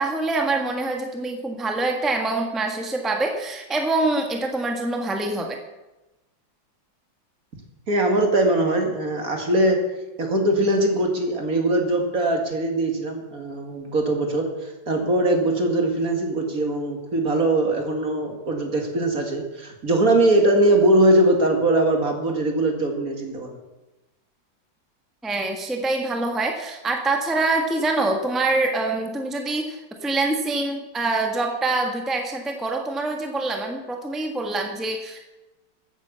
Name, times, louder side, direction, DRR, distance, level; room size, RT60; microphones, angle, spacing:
voice 1, 0.0-5.6 25.2-35.3, right 2 dB, ahead, 3 dB, 1.4 m, -25 dB
voice 2, 7.9-9.8 10.2-23.5, right 1 dB, 50° right, 3 dB, 2.5 m, -21 dB
14.5 x 9.0 x 7.0 m, 1.1 s
omnidirectional pair, 2.0 m